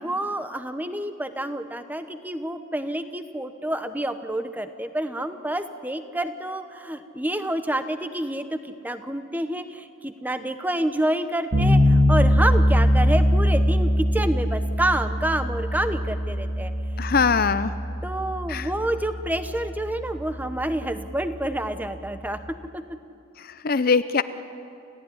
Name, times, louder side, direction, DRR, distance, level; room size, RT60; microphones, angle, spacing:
voice 1, 0.0-16.7 18.0-22.4 22.7-22.8, right 1 dB, 10° right, 10 dB, 0.9 m, -28 dB
sound 1, 11.5-22.4, equal, 45° right, 2.5 m, -23 dB
voice 2, 17.0-17.7 18.5-18.7 23.4-24.2, left 5 dB, 45° left, 13 dB, 0.5 m, -22 dB
29.5 x 15.0 x 9.9 m, 2.6 s
head